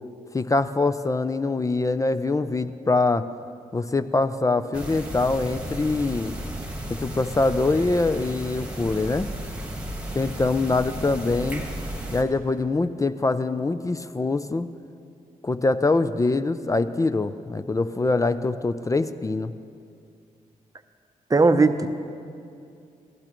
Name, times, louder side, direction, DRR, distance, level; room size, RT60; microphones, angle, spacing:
voice 1, 0.3-3.3 3.7-6.4 6.9-9.3 10.1-11.6 12.1-14.7 15.4-19.5, left 3 dB, 20° left, 12 dB, 0.4 m, -24 dB
sound 1, 4.7-12.2, right 1 dB, 10° right, 1.5 m, -34 dB
voice 2, 21.3-21.9, right 3 dB, 25° right, 8 dB, 0.7 m, -17 dB
16.5 x 12.0 x 3.0 m, 2.5 s
cardioid pair, 65°, 15 cm